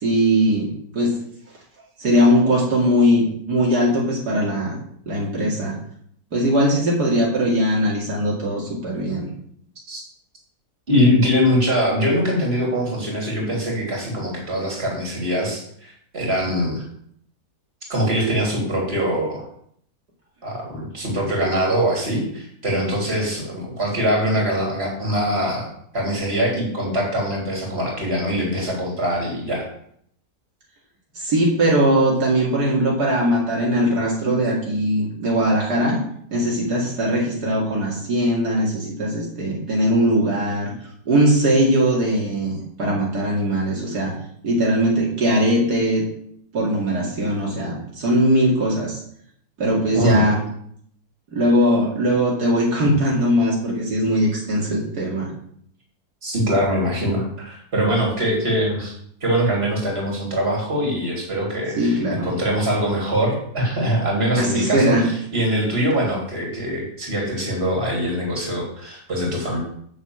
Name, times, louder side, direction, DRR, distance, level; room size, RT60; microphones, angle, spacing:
voice 1, 0.0-1.1 2.0-4.8 5.1-5.8 6.3-9.3 31.1-36.0 36.3-40.7 41.1-44.1 44.4-46.1 46.5-49.0 49.6-50.4 51.3-55.3 61.8-62.3 64.3-65.1, equal, 75° right, -4 dB, 3.0 m, -20 dB
voice 2, 10.9-16.8 17.9-19.5 20.4-25.7 25.9-29.7 49.9-50.2 56.2-58.9 59.2-69.6, equal, 40° right, -2 dB, 3.7 m, -23 dB
7.3 x 7.2 x 7.8 m, 0.67 s
omnidirectional pair, 1.7 m